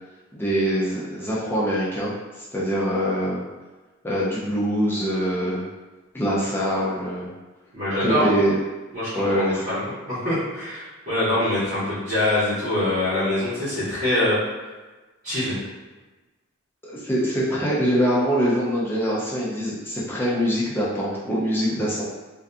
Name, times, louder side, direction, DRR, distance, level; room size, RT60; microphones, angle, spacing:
voice 1, 0.3-2.1 2.5-3.4 4.0-5.6 6.1-7.3 8.0-8.6 9.1-9.6 16.8-22.0, equal, 10° left, -7 dB, 0.5 m, -23 dB
voice 2, 7.7-8.3 8.9-14.4 15.2-15.6, left 1 dB, 45° right, -15 dB, 1.0 m, -24 dB
2.6 x 2.4 x 2.2 m, 1.2 s
head